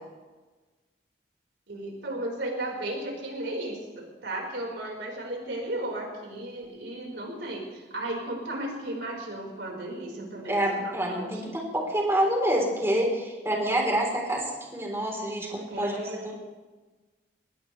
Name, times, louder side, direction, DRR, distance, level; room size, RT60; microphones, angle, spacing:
voice 1, 1.7-11.3 15.7-16.4, right 1 dB, 90° right, -1 dB, 4.7 m, -35 dB
voice 2, 10.5-14.5 14.7-16.0, right 1 dB, 15° right, -1 dB, 3.7 m, -27 dB
22.0 x 19.5 x 3.3 m, 1.3 s
head